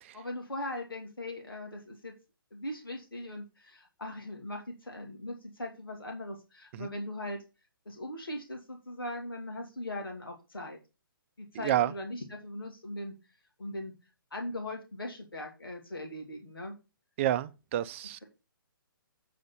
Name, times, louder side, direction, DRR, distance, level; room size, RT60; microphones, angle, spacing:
voice 1, 0.1-2.1 2.5-7.4 7.9-10.8 11.4-13.1 13.6-13.9 14.3-16.8, left 1 dB, 80° left, 2.6 m, -39 dB
voice 2, 11.5-11.9 17.2-18.2, right 12 dB, 35° right, 0.5 m, -29 dB
8.4 x 4.0 x 6.9 m
figure-of-eight pair, 135°, 12 cm